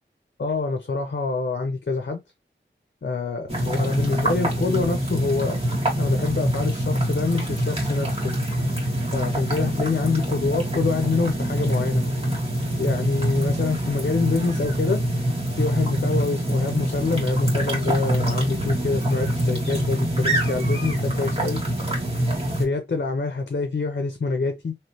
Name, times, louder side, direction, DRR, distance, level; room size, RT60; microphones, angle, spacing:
voice 1, 0.4-2.2 3.0-5.6 6.0-8.3 9.1-12.0 12.8-15.0 15.6-21.6 22.5-24.8, left 3 dB, 60° left, 0.7 m, -26 dB
sound 1, 3.5-22.6, right 1 dB, 30° right, 1.8 m, -25 dB
3.2 x 3.1 x 2.8 m
wide cardioid pair, 60°, 20 cm